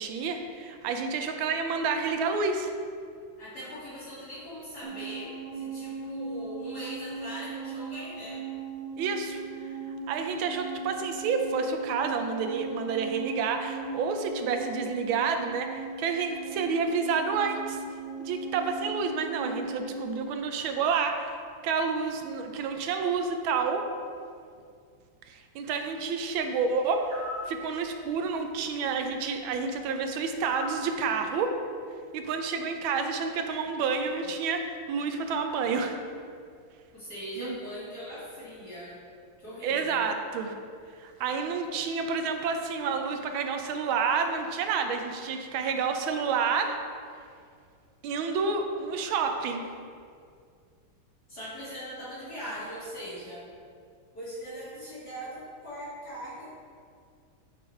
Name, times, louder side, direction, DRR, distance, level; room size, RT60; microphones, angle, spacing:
voice 1, 0.0-2.7 9.0-9.4 10.1-17.8 18.2-23.8 25.3-27.2 27.5-31.6 32.1-36.0 37.4-37.6 39.6-40.6 41.0-46.8 48.0-49.6, right 5 dB, 75° right, 5 dB, 1.3 m, -29 dB
voice 2, 3.4-8.4 36.9-39.0 39.4-40.0 51.3-53.4 54.1-56.5, equal, 50° left, -9 dB, 1.8 m, -40 dB
sound 1, 4.8-20.2, right 4 dB, 60° right, 0.7 m, -38 dB
sound 2, 27.1-27.5 30.4-30.8, left 2 dB, 10° right, 1.2 m, -37 dB
8.3 x 3.8 x 4.2 m, 2.3 s
omnidirectional pair, 2.4 m